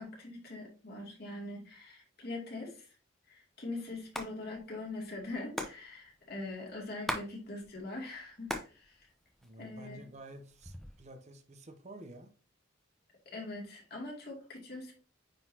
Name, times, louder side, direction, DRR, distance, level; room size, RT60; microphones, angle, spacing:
voice 1, 0.0-2.9 3.3-9.1 9.6-10.0 13.3-14.9, left 2 dB, 50° left, 2.4 m, -42 dB
Hands, 3.9-4.3 4.6-4.7 4.9-7.3 7.6-8.8 9.1-9.9 10.4-11.0, equal, ahead, 0.7 m, -39 dB
voice 2, 9.4-12.3, right 1 dB, 35° right, 0.7 m, -50 dB
9.0 x 3.9 x 2.8 m
head